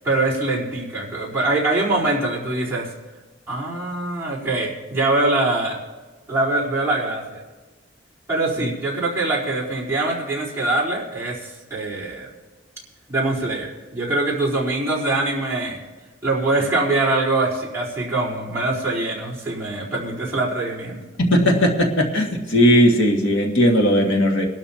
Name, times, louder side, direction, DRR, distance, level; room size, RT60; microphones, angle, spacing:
voice 1, 0.0-2.9 3.5-5.8 6.3-7.4 8.3-12.3 13.1-15.8 16.2-21.0, right 2 dB, 15° right, -7 dB, 4.2 m, -23 dB
voice 2, 21.2-24.4, equal, 85° left, 1 dB, 2.1 m, -17 dB
23.0 x 12.5 x 2.9 m, 1.2 s
head